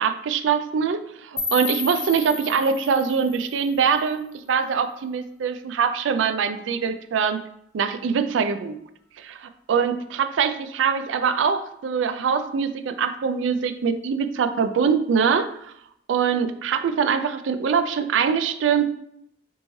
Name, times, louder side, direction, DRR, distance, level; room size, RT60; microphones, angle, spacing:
voice 1, 0.0-7.4 7.7-8.8 9.2-15.7 16.1-18.8, right 6 dB, 90° right, 10 dB, 0.4 m, -23 dB
sound 1, 1.4-4.4, left 4 dB, 15° left, 0.9 m, -32 dB
4.5 x 2.7 x 3.0 m, 0.72 s
head